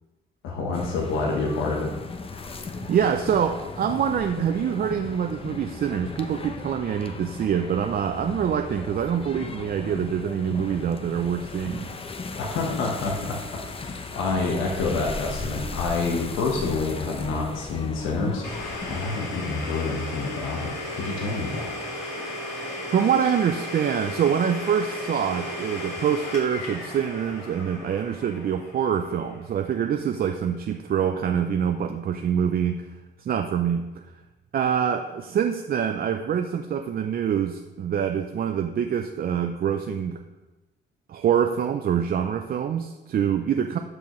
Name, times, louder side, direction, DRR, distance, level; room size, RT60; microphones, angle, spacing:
voice 1, 0.4-1.9 12.3-13.4 13.7-21.8, left 3 dB, 90° left, -1 dB, 1.1 m, -28 dB
sound 1, 0.7-19.1, left 3 dB, 30° left, 0.7 m, -36 dB
voice 2, 2.7-11.9 22.9-32.8 33.2-34.0 34.5-40.2 41.1-43.8, right 8 dB, 50° right, 6 dB, 0.5 m, -25 dB
Domestic sounds home sounds, 18.4-30.1, left 1 dB, 55° left, 2.8 m, -35 dB
12.5 x 4.8 x 3.1 m, 1.1 s
cardioid pair, 90°, 20 cm